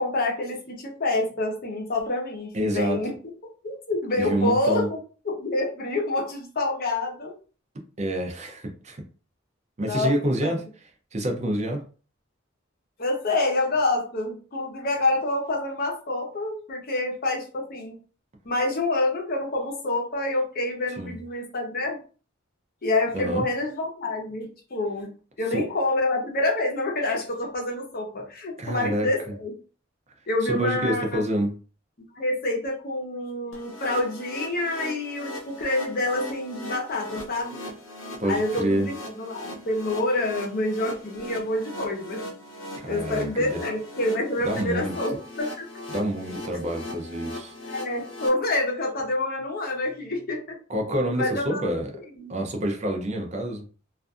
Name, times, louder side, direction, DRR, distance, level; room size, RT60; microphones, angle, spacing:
voice 1, 0.0-3.1 3.6-5.0 5.2-7.3 9.8-10.1 10.4-10.7 13.0-18.0 18.5-22.0 22.8-25.1 25.4-29.5 30.3-31.3 32.1-37.6 38.2-42.2 42.9-45.7 47.6-50.6 51.2-51.6 52.2-52.3, left 2 dB, 50° left, 1 dB, 0.7 m, -27 dB
voice 2, 2.5-3.0 4.2-4.9 8.0-9.0 9.8-10.6 11.1-11.8 21.0-21.2 23.1-23.4 25.5-25.6 28.6-29.1 30.4-31.5 38.2-38.9 42.8-43.6 44.4-45.2 45.9-47.5 50.7-51.9 52.3-53.6, right 1 dB, 35° right, 2 dB, 0.5 m, -27 dB
sound 1, 33.5-48.3, left 1 dB, 80° left, 0.8 m, -39 dB
2.5 x 2.4 x 2.4 m, 0.37 s
head